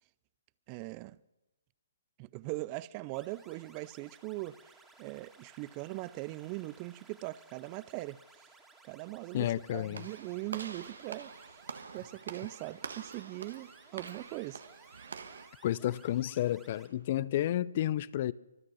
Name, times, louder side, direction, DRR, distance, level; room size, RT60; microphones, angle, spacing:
voice 1, 0.7-1.2 2.2-8.5 8.8-11.3 11.9-14.6, right 19 dB, 30° right, 0.4 m, -41 dB
sound 1, 3.1-16.9, right 3 dB, 10° right, 2.4 m, -60 dB
voice 2, 9.3-10.0 15.6-18.3, left 12 dB, 45° left, 0.5 m, -31 dB
Walk footsteps / Slam, 9.9-15.5, right 5 dB, 70° right, 1.4 m, -46 dB
24.5 x 8.4 x 6.3 m
hypercardioid pair, 140°, 0 cm